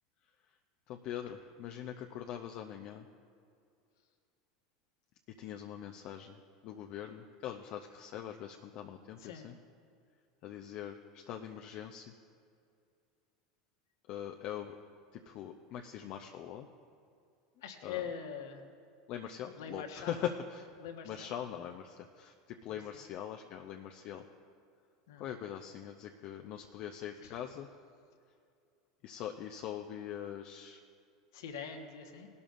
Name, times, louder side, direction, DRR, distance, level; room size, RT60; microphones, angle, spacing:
voice 1, 0.9-3.1 5.4-6.4 6.6-9.5 10.4-12.1 14.1-14.8 15.3-16.7 17.8-18.0 19.1-20.7 21.0-22.3 22.6-24.2 25.2-27.7 29.0-30.8, left 10 dB, 55° left, 3 dB, 0.6 m, -42 dB
voice 2, 17.6-18.6 19.6-20.2 20.8-21.3 22.7-23.0 25.1-25.2 27.2-27.3 31.3-32.3, left 7 dB, 75° left, 4 dB, 1.3 m, -43 dB
19.0 x 12.5 x 2.6 m, 2.4 s
hypercardioid pair, 85°, 2 cm